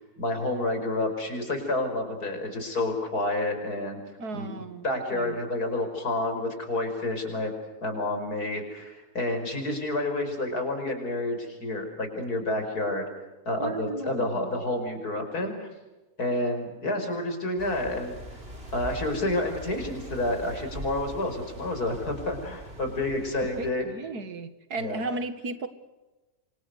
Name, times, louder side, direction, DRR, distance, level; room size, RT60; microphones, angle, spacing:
voice 1, 0.0-4.0 4.3-7.5 7.8-13.1 13.5-15.7 16.2-18.4 18.7-23.9 24.8-25.0, left 2 dB, 85° left, 6 dB, 5.8 m, -29 dB
voice 2, 4.2-5.4 13.6-14.6 23.4-25.7, right 3 dB, 90° right, 11 dB, 2.4 m, -35 dB
sound 1, 17.6-23.7, right 1 dB, 40° right, 4.3 m, -42 dB
28.5 x 25.0 x 6.6 m, 1.1 s
omnidirectional pair, 1.6 m